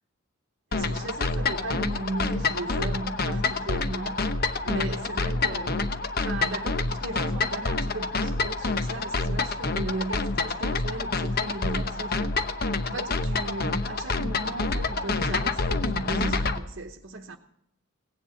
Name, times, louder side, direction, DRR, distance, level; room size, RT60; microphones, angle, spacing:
sound 1, 0.7-16.6, left 3 dB, 45° left, 0.9 m, -27 dB
voice 1, 0.7-17.4, right 2 dB, 55° right, 1.0 m, -36 dB
17.5 x 10.5 x 7.2 m
head